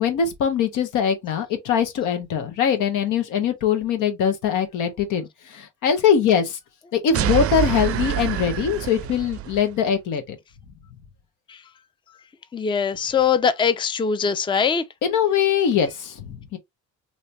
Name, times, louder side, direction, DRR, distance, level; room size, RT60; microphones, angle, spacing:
voice 1, 0.0-6.6 6.9-10.4 15.0-16.6, left 7 dB, 85° left, 1.0 m, -22 dB
sound 1, 7.1-9.7, right 12 dB, 50° right, 0.4 m, -26 dB
voice 2, 12.5-14.8, left 6 dB, 15° left, 0.4 m, -22 dB
3.2 x 2.8 x 2.6 m
cardioid pair, 90°, 30 cm